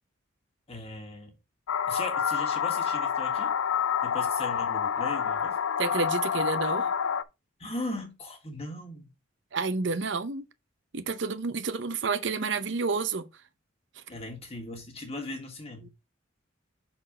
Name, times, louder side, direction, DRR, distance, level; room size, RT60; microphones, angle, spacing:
voice 1, 0.7-1.3 1.9-3.5 4.0-5.6 7.6-9.1 14.1-15.9, left 2 dB, 30° left, 1.7 m, -38 dB
sound 1, 1.7-7.2, left 7 dB, 85° left, 0.5 m, -28 dB
voice 2, 5.8-6.9 9.5-10.4 10.9-13.3, right 4 dB, 60° right, 0.7 m, -29 dB
5.9 x 4.4 x 4.9 m
head